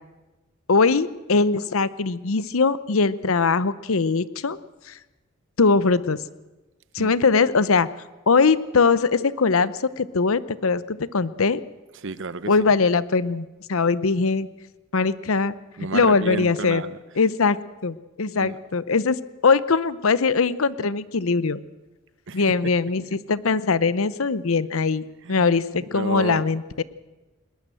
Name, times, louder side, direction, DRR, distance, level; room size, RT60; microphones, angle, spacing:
voice 1, 0.7-4.6 4.9-5.0 5.6-6.2 6.9-7.9 8.3-11.6 12.5-14.5 14.9-15.5 15.9-16.8 17.2-17.6 17.8-19.2 19.4-21.6 22.3-26.8, left 4 dB, 75° left, 0.8 m, -21 dB
voice 2, 11.9-12.5 15.8-17.0 18.3-18.6 22.3-22.5 25.2-25.6 25.9-26.5, right 3 dB, 60° right, 0.9 m, -31 dB
21.0 x 19.5 x 7.7 m
head